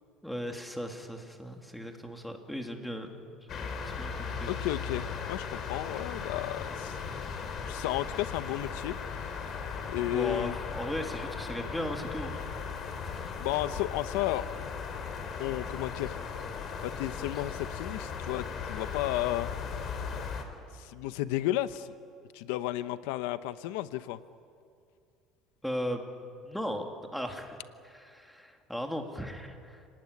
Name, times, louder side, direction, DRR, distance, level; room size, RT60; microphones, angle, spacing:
voice 1, 0.2-3.2 3.6-4.5 10.1-12.4 13.0-13.3 25.6-26.1 26.4-27.6 27.8-29.9, equal, ahead, 3 dB, 2.8 m, -37 dB
sound 1, 3.5-20.4, left 6 dB, 45° left, 3.6 m, -37 dB
voice 2, 4.5-7.0 7.6-9.3 9.9-10.6 13.4-14.7 15.4-16.2 16.8-19.5 20.7-21.9 22.3-24.2, left 15 dB, 85° left, 13 dB, 0.8 m, -33 dB
29.0 x 19.0 x 9.8 m, 2.3 s
cardioid pair, 120°, 0 cm